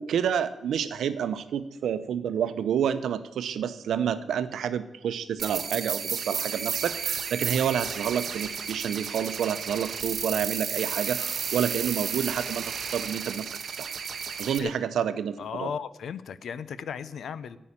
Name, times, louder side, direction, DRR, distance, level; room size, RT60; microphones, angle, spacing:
voice 1, 0.0-13.9 14.4-15.7, right 8 dB, 85° right, 12 dB, 0.8 m, -29 dB
sound 1, 5.4-14.6, right 6 dB, 55° right, 0.9 m, -32 dB
voice 2, 15.4-17.6, left 7 dB, 65° left, 16 dB, 0.6 m, -35 dB
14.5 x 5.5 x 8.7 m, 0.93 s
wide cardioid pair, 150°, 0 cm